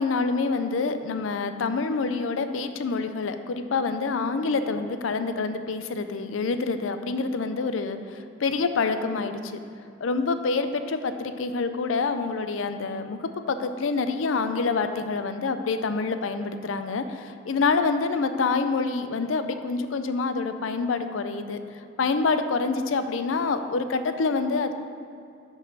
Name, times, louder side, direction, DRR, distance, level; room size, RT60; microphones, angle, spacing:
voice 1, 0.0-9.6 10.0-21.6 22.0-24.7, left 4 dB, 85° left, 9 dB, 0.5 m, -27 dB
6.2 x 5.4 x 5.4 m, 2.5 s
head